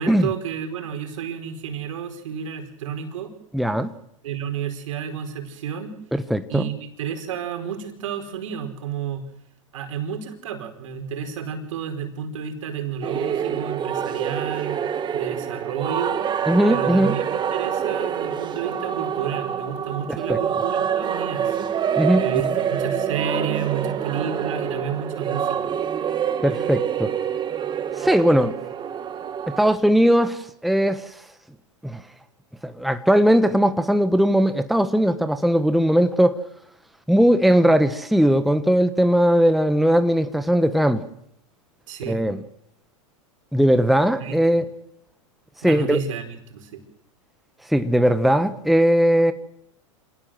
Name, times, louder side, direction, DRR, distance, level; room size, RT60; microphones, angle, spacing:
voice 1, 0.0-3.3 4.2-5.9 6.5-9.2 9.7-14.8 15.1-16.2 16.7-21.7 22.2-25.7 41.9-42.2 44.2-44.6 45.6-46.8, right 7 dB, 75° right, 4.9 m, -31 dB
voice 2, 3.5-3.9 6.1-6.7 16.5-17.2 20.1-20.4 22.0-22.2 26.4-27.1 28.0-28.5 29.5-31.1 31.8-32.0 32.6-36.4 37.1-41.0 42.1-42.4 43.5-44.7 45.6-46.0 47.7-49.3, equal, ahead, 1.2 m, -19 dB
sound 1, 13.0-29.6, right 8 dB, 25° right, 1.7 m, -26 dB
27.0 x 18.0 x 7.8 m
hypercardioid pair, 115°, 17 cm